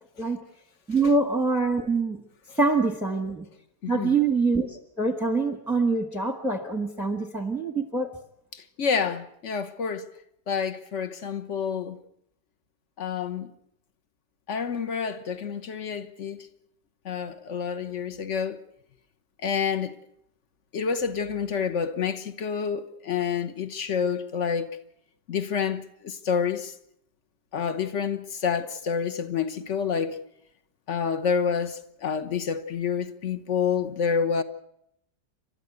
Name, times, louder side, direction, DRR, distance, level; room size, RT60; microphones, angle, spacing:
voice 1, 0.9-2.2 2.6-3.4 3.9-8.1, right 3 dB, ahead, 1.0 m, -25 dB
voice 2, 3.8-4.2 8.5-10.1 10.5-12.0 13.0-13.5 14.5-16.5 17.0-18.6 19.4-20.0 20.7-24.7 25.3-26.7 27.5-30.2 30.9-34.4, left 6 dB, 45° left, 1.2 m, -28 dB
29.0 x 12.5 x 8.0 m
omnidirectional pair, 1.9 m